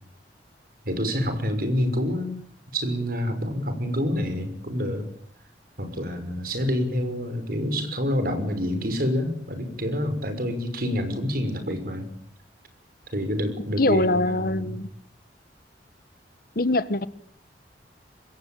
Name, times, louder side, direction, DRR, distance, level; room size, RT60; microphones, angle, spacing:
voice 1, 0.8-2.4 2.7-5.1 5.8-12.1 13.1-14.7, equal, 55° right, 8 dB, 6.0 m, -27 dB
voice 2, 13.8-14.9 16.5-17.1, left 2 dB, 55° left, 15 dB, 1.3 m, -23 dB
25.5 x 21.5 x 9.1 m, 0.65 s
head